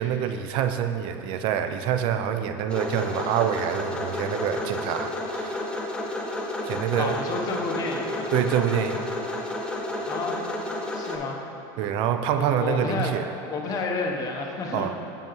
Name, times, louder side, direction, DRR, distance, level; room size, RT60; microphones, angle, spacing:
voice 1, 0.0-5.6 6.7-7.2 8.3-9.0 11.8-13.3 14.7-15.0, right 9 dB, 55° right, 8 dB, 0.4 m, -26 dB
sound 1, 2.7-11.2, left 1 dB, 10° left, 0.6 m, -31 dB
voice 2, 7.0-8.7 10.1-10.4 10.9-11.4 12.4-14.9, left 3 dB, 40° left, 1 dB, 0.8 m, -30 dB
7.3 x 6.9 x 3.0 m, 2.8 s
supercardioid pair, 130°, 10 cm